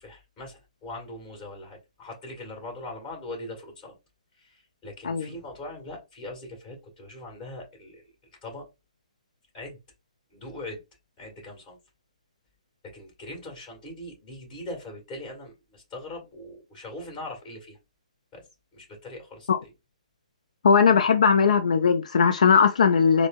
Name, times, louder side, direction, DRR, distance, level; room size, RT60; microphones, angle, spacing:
voice 1, 0.0-3.9 4.3-8.1 8.4-8.7 9.5-9.8 10.3-10.8 11.2-11.8 12.8-17.8 18.3-18.5 18.7-19.7, left 1 dB, 20° left, 2.1 m, -41 dB
voice 2, 20.6-23.3, left 6 dB, 65° left, 0.4 m, -19 dB
4.5 x 2.0 x 2.5 m
hypercardioid pair, 140°, 4 cm